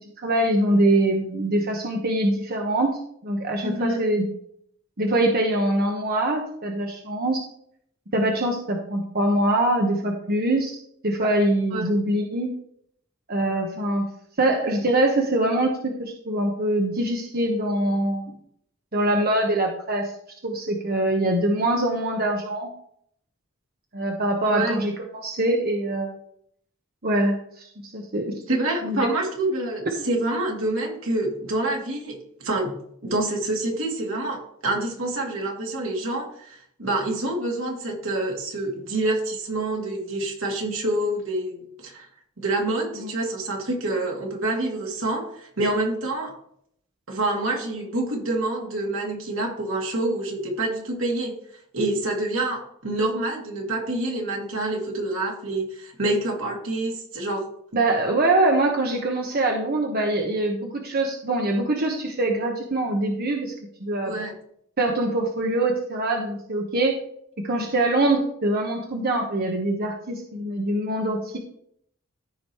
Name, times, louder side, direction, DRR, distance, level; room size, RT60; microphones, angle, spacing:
voice 1, 0.2-4.3 5.0-7.5 8.1-12.5 13.3-14.1 14.4-15.7 16.0-18.3 18.9-20.1 20.4-22.7 23.9-26.2 27.0-28.4 28.8-29.0 42.9-43.1 57.7-63.5 63.8-64.2 64.8-67.0 67.4-71.4, right 1 dB, 50° right, 1 dB, 1.1 m, -23 dB
voice 2, 3.6-4.0 11.7-11.8 24.5-24.8 28.5-42.1 42.4-46.4 47.1-51.3 51.7-57.5 64.0-64.3, right 2 dB, 80° right, -1 dB, 2.5 m, -27 dB
14.5 x 5.1 x 3.1 m, 0.67 s
head